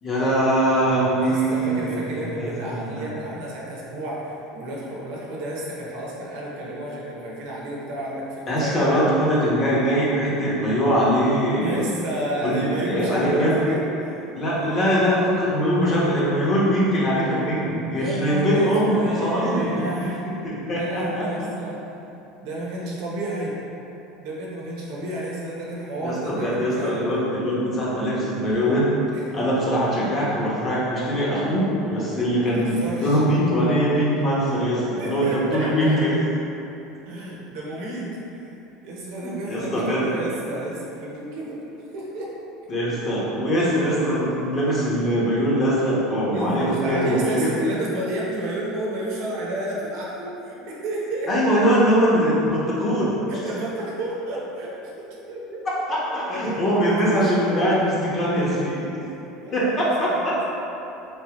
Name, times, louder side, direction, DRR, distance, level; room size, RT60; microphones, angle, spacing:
voice 1, 0.0-3.0 8.5-11.8 12.4-13.5 14.3-19.7 20.4-21.5 26.0-28.9 29.3-36.1 39.2-40.1 42.7-47.5 51.3-53.2 55.9-58.9 59.5-60.3, equal, 40° left, -7 dB, 1.1 m, -22 dB
voice 2, 1.2-9.0 11.6-14.3 14.5-15.0 17.9-20.2 20.7-21.8 22.4-23.5 24.2-27.0 29.1-29.2 32.6-33.2 34.9-36.0 37.0-38.5 38.8-41.6 41.9-42.3 46.3-51.3 53.3-54.9 55.3-55.6 56.1-57.8 59.0-60.4, right 1 dB, 70° right, -4 dB, 0.8 m, -31 dB
3.5 x 2.7 x 3.0 m, 2.9 s
hypercardioid pair, 85°, 0 cm